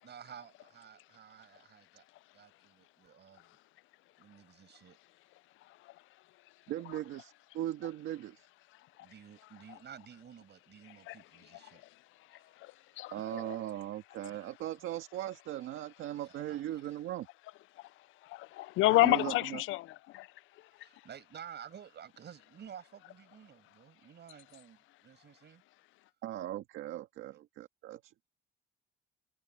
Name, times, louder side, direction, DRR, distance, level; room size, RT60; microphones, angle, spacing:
voice 1, 0.0-2.0 2.3-3.5 4.2-5.0 9.0-11.8 12.3-12.4 12.9-13.3 14.3-14.4 16.5-16.8 18.9-19.1 20.8-25.6 27.3-27.4, right 8 dB, 60° right, 7.7 m, -52 dB
voice 2, 6.7-8.5 13.1-17.3 19.0-19.6 26.2-28.1, right 13 dB, 90° right, 1.7 m, -39 dB
voice 3, 12.6-13.6 18.2-20.3, left 18 dB, 85° left, 0.4 m, -30 dB
cardioid pair, 90°, 20 cm